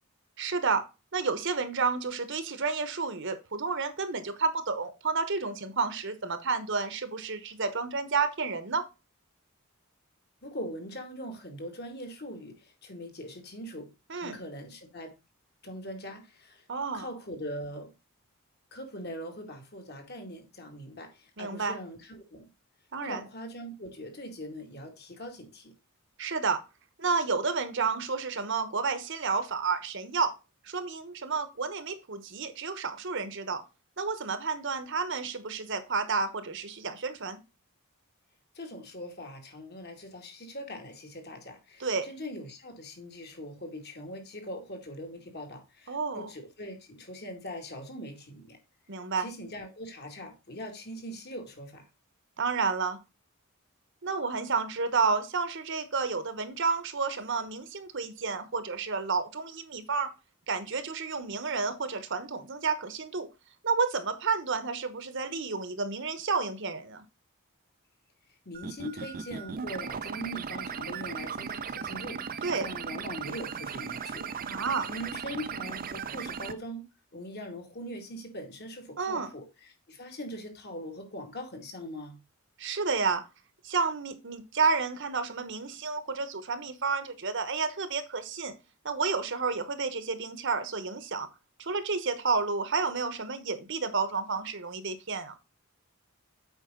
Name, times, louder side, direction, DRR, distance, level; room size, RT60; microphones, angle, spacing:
voice 1, 0.4-0.9 1.1-8.8 14.1-14.4 16.7-17.1 21.4-21.8 22.9-23.2 26.2-26.6 27.0-30.3 30.6-33.6 34.0-37.4 41.8-42.1 45.9-46.3 48.9-49.3 52.4-53.0 54.0-60.1 60.5-63.3 63.6-67.0 72.4-72.7 74.4-74.9 79.0-79.3 82.6-83.2 83.6-88.5 88.8-91.3 91.6-95.4, right 4 dB, 55° right, 1.1 m, -30 dB
voice 2, 10.4-15.1 15.6-16.6 16.9-17.9 18.7-22.5 23.0-25.7 38.5-48.6 49.2-51.8 68.5-74.3 74.9-76.8 77.1-82.2, equal, 50° left, 2.3 m, -41 dB
sound 1, 68.5-76.5, right 6 dB, 40° right, 0.5 m, -37 dB
8.2 x 5.2 x 3.8 m
head